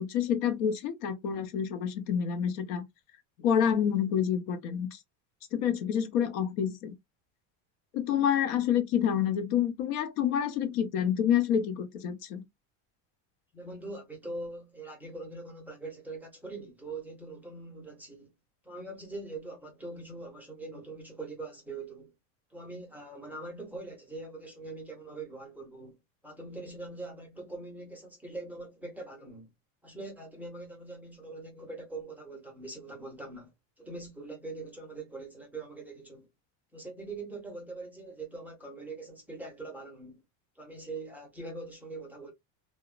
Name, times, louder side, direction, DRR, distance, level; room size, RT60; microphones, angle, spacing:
voice 1, 0.0-2.8 3.4-5.0 5.5-6.9 7.9-12.4, left 8 dB, 90° left, 0.8 m, -28 dB
voice 2, 13.5-18.3 18.6-22.1 22.5-26.0 26.2-29.5 29.8-36.3 36.7-40.2 40.6-42.3, right 2 dB, 5° right, 0.4 m, -42 dB
3.0 x 2.1 x 2.3 m
cardioid pair, 160°, 40 cm